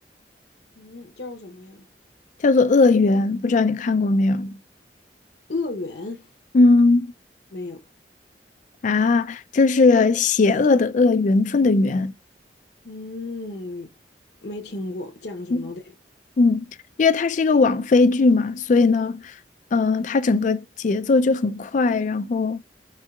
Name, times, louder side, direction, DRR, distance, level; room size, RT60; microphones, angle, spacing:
voice 1, 0.8-1.9 5.5-6.3 7.5-7.8 12.8-13.9 14.4-15.8, left 3 dB, 65° left, 0.8 m, -33 dB
voice 2, 2.4-4.6 6.5-7.1 8.8-12.1 15.5-15.6 16.4-16.6 17.0-19.4 19.7-22.6, left 3 dB, 45° left, 0.4 m, -19 dB
4.7 x 4.3 x 2.3 m
head